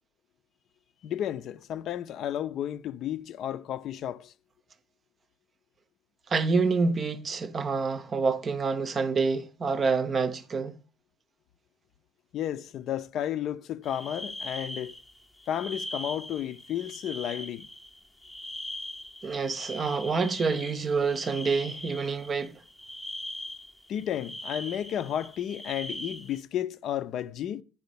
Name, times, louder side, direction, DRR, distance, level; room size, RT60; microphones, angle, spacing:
voice 1, 1.0-4.3 12.3-14.9 15.5-17.7 23.9-27.6, left 10 dB, 45° left, 0.7 m, -32 dB
voice 2, 6.3-10.8 19.2-22.6, right 4 dB, 25° right, 0.7 m, -27 dB
sound 1, 13.8-26.4, left 1 dB, 5° left, 0.8 m, -41 dB
10.5 x 5.1 x 6.9 m
cardioid pair, 130°, 0 cm